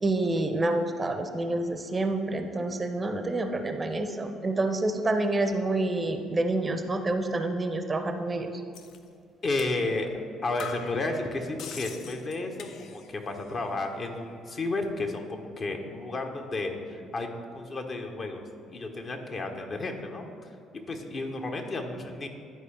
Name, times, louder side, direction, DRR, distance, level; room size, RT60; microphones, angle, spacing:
voice 1, 0.0-8.5, right 2 dB, 25° right, 7 dB, 0.6 m, -28 dB
sound 1, 8.7-9.0 9.6-9.8 10.1-10.2 10.6-13.2 13.5-14.1, left 6 dB, 55° left, 0.5 m, -43 dB
voice 2, 9.4-10.1 10.4-18.4 18.7-20.5 20.9-22.3, left 2 dB, 40° left, 3 dB, 0.9 m, -32 dB
11.0 x 4.7 x 3.3 m, 2.4 s
figure-of-eight pair, 50°, 0 cm